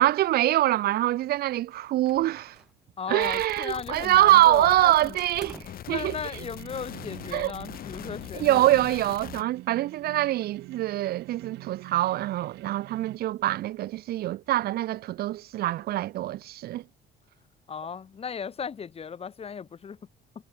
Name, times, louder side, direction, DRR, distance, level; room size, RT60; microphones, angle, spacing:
voice 1, 0.0-2.6 3.1-6.1 7.3-7.5 8.3-16.8, right 14 dB, 65° right, 0.8 m, -24 dB
sound 1, 2.1-2.8 3.1-4.0 5.2-5.9, right 1 dB, 5° right, 1.8 m, -49 dB
voice 2, 3.0-5.2 5.9-8.8 17.7-20.0, left 6 dB, 35° left, 3.3 m, -36 dB
sound 2, 3.2-9.4, left 11 dB, 60° left, 6.3 m, -42 dB
sound 3, 6.3-13.2, right 19 dB, 90° right, 2.3 m, -45 dB
cardioid pair, 110°, 17 cm